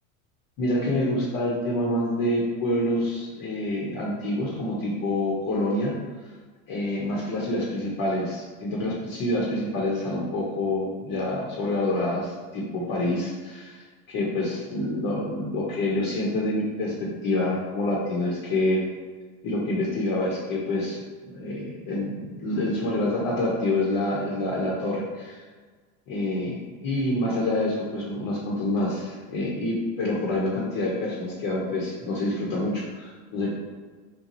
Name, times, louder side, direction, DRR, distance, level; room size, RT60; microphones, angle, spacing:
voice 1, 0.6-5.9 6.7-18.8 19.4-21.0 21.2-25.4 26.1-33.5, left 1 dB, 50° left, -4 dB, 1.0 m, -27 dB
3.0 x 2.3 x 3.9 m, 1.4 s
hypercardioid pair, 95°, 42 cm